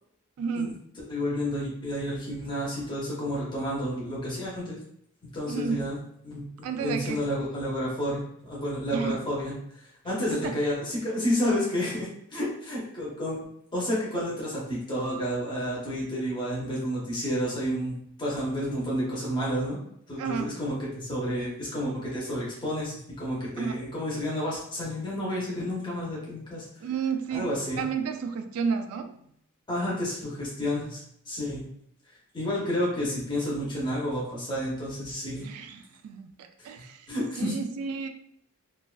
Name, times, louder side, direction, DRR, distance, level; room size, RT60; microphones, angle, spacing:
voice 1, 0.4-0.8 5.5-5.9 6.6-7.3 8.9-9.2 10.3-10.6 20.2-20.6 23.6-23.8 26.8-29.1 35.4-37.1 37.4-38.1, right 6 dB, 80° right, 10 dB, 0.3 m, -32 dB
voice 2, 1.1-4.8 5.3-6.0 6.2-9.5 10.0-13.4 13.7-19.8 20.1-26.7 27.3-27.8 29.7-31.7 32.3-35.4 37.1-37.5, equal, 20° left, -6 dB, 0.7 m, -30 dB
2.4 x 2.3 x 2.3 m, 0.70 s
head